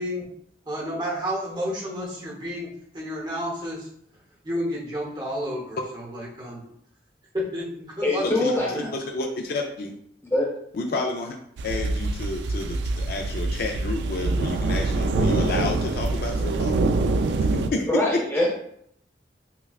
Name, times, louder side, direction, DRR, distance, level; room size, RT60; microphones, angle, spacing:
voice 1, 0.7-2.7 2.9-3.9 4.4-6.6 7.3-8.9, equal, 25° right, -3 dB, 1.0 m, -31 dB
voice 2, 8.0-8.9 10.3-10.5 17.9-18.6, left 1 dB, 15° left, -3 dB, 1.0 m, -23 dB
voice 3, 9.1-9.9 10.7-11.4 11.6-16.9 17.5-17.9, left 2 dB, 55° left, 2 dB, 0.4 m, -30 dB
sound 1, 11.6-17.7, right 2 dB, 70° right, 0.3 m, -25 dB
5.7 x 2.2 x 2.3 m, 0.68 s
head